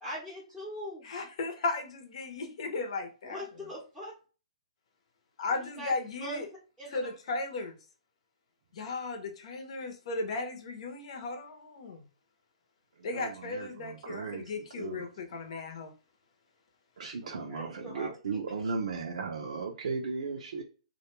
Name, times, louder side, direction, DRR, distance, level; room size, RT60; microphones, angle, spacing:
voice 1, 0.0-1.1 3.2-4.1 5.5-5.9 6.2-6.5 6.8-7.2 17.2-18.2, equal, 5° left, 0.7 m, -41 dB
voice 2, 1.0-3.4 5.4-6.5 6.9-7.7 8.7-12.0 13.0-15.9, left 3 dB, 55° left, 0.7 m, -36 dB
voice 3, 13.0-15.1 17.0-20.6, right 4 dB, 75° right, 0.5 m, -36 dB
2.2 x 2.2 x 2.9 m
hypercardioid pair, 150°, 4 cm